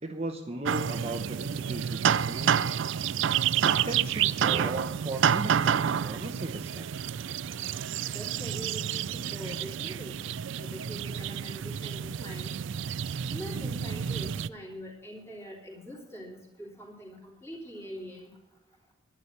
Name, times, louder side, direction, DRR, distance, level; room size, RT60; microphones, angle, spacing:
voice 1, 0.0-2.8 3.6-6.9, right 2 dB, 30° right, 4 dB, 0.8 m, -37 dB
sound 1, 0.6-14.5, right 8 dB, 60° right, 0.4 m, -29 dB
voice 2, 2.3-2.6 4.5-4.8 8.1-10.2 10.6-12.5 13.3-18.3, equal, 15° left, -2 dB, 3.4 m, -43 dB
11.0 x 10.0 x 6.6 m, 0.95 s
head